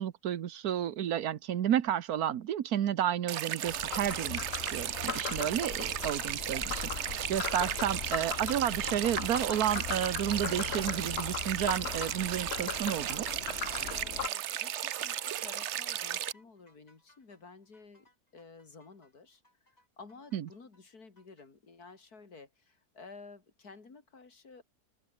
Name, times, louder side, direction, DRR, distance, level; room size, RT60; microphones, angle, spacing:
voice 1, 0.0-13.3 20.3-20.4, right 10 dB, 85° right, 1.4 m, -31 dB
sound 1, 3.3-16.3, right 11 dB, 60° right, 0.9 m, -35 dB
Frog, 3.7-14.3, left 8 dB, 50° left, 1.0 m, -39 dB
voice 2, 5.3-5.6 7.6-7.8 13.7-18.1 18.3-19.4 20.0-24.6, left 4 dB, 90° left, 3.7 m, -53 dB
sound 2, 13.2-21.5, left 1 dB, 25° left, 4.7 m, -65 dB
open air
omnidirectional pair, 1.6 m